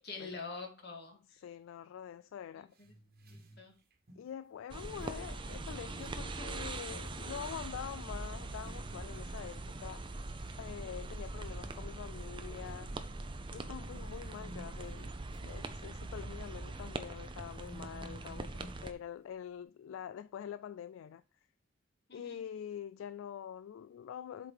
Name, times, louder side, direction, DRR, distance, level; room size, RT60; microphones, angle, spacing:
voice 1, 0.0-1.4 2.6-2.9 3.3-3.7 22.1-22.4, left 4 dB, 55° left, 2.0 m, -46 dB
voice 2, 1.3-2.7 4.2-10.1 10.6-12.9 13.5-15.1 15.4-21.2 22.1-24.5, left 9 dB, 85° left, 0.3 m, -45 dB
sound 1, 2.7-4.3 4.7-6.5 6.8-7.2 7.8-7.9 8.4-10.7 11.0-11.3 11.7-11.8 12.6-16.6 17.1-18.8, right 1 dB, 50° right, 1.3 m, -56 dB
sound 2, 4.7-18.9, right 2 dB, 25° right, 0.6 m, -42 dB
7.8 x 3.8 x 4.7 m
head